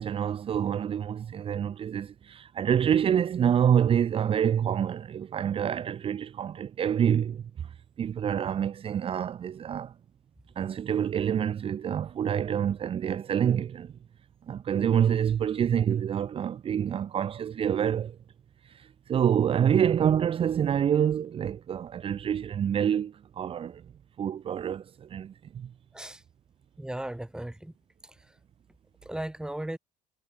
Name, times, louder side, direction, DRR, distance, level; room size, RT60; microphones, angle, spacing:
voice 1, 0.0-9.9 10.5-13.9 14.5-18.1 18.6-23.8 24.2-25.7, right 9 dB, 40° right, 1.4 m, -27 dB
voice 2, 26.8-27.7 29.1-29.8, right 1 dB, 5° right, 5.3 m, -36 dB
cardioid pair, 160°, 15 cm